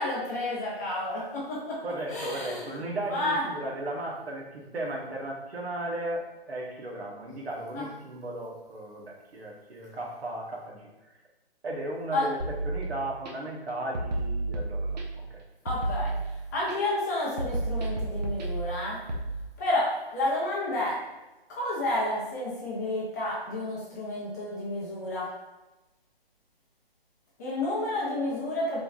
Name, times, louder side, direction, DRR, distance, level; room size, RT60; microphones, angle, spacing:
voice 1, 0.0-1.8 2.1-2.7 3.1-3.4 7.7-7.8 12.1-12.2 15.6-16.1 16.5-19.0 19.6-21.0 21.5-25.3 27.4-28.8, left 1 dB, 15° left, -6 dB, 0.5 m, -30 dB
voice 2, 1.8-10.9 11.6-15.4, right 1 dB, 85° right, -1 dB, 1.0 m, -36 dB
sound 1, 12.4-13.3 13.9-15.3 15.7-16.7 17.4-19.3, right 2 dB, 45° right, 0.6 m, -31 dB
3.9 x 3.3 x 2.3 m, 1.1 s
hypercardioid pair, 150°, 31 cm